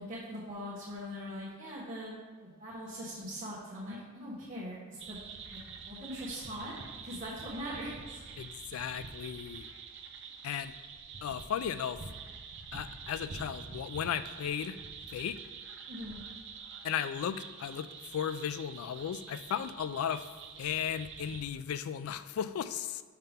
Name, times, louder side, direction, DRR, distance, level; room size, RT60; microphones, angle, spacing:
voice 1, 0.0-2.1 2.4-5.2 5.5-6.7 7.0-8.2 15.9-16.2, equal, 40° right, -9 dB, 1.3 m, -41 dB
sound 1, 5.0-21.4, right 5 dB, 55° right, 0.5 m, -46 dB
voice 2, 8.4-9.7 10.4-10.7 11.2-12.0 12.7-14.8 15.1-15.4 16.8-20.2 20.6-23.0, left 8 dB, 80° left, 14 dB, 0.3 m, -35 dB
5.8 x 5.5 x 3.5 m, 1.4 s
head